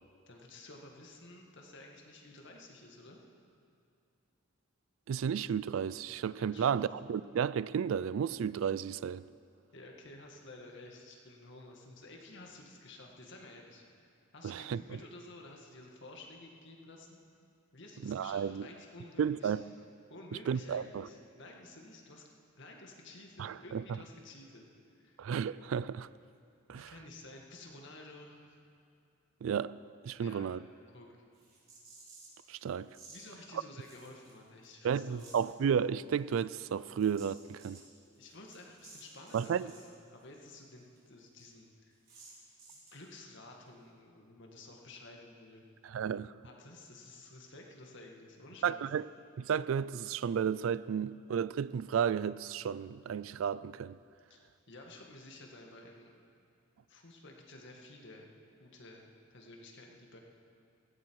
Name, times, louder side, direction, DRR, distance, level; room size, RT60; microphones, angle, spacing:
voice 1, 0.3-3.2 6.4-7.2 9.7-17.2 17.7-19.5 20.1-22.3 22.6-24.7 25.0-25.2 26.7-28.6 30.2-30.5 30.9-31.2 33.1-35.4 38.2-42.0 42.7-45.9 46.4-48.8 54.3-56.1 56.9-58.3 58.6-60.2, left 2 dB, 60° left, 1.9 m, -52 dB
voice 2, 5.1-9.2 14.4-14.8 18.0-18.7 19.2-19.6 20.5-21.1 23.4-23.8 25.2-26.1 26.7-26.9 29.4-29.7 30.0-30.6 32.5-32.9 34.8-37.8 39.3-39.7 45.8-46.3 48.6-49.0 49.4-54.0, right 7 dB, 65° right, 0.3 m, -33 dB
sound 1, 31.3-32.5 32.9-33.2 33.8-34.6 34.9-35.5 36.1-39.9 40.2-40.3 40.5-40.6 41.0-41.1 41.4-41.5 42.1-43.1, right 3 dB, 45° right, 4.1 m, -56 dB
17.0 x 15.0 x 4.7 m
head